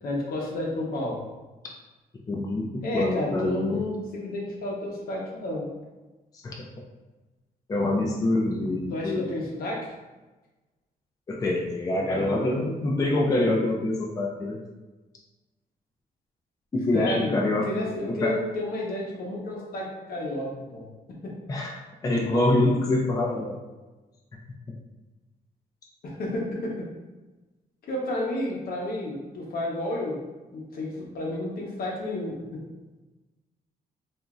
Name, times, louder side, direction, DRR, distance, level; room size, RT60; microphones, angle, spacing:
voice 1, 0.0-1.2 2.8-5.7 8.9-9.9 12.1-12.6 16.9-20.9 21.2-21.3 26.0-26.9 27.8-30.2 30.5-32.6, left 1 dB, 70° left, -2 dB, 0.8 m, -31 dB
voice 2, 2.3-3.8 6.3-6.7 7.7-9.2 11.3-14.6 16.7-17.7 18.1-18.4 21.5-23.6, left 2 dB, 20° left, -1 dB, 0.4 m, -25 dB
2.9 x 2.5 x 2.4 m, 1.2 s
cardioid pair, 120°, 16 cm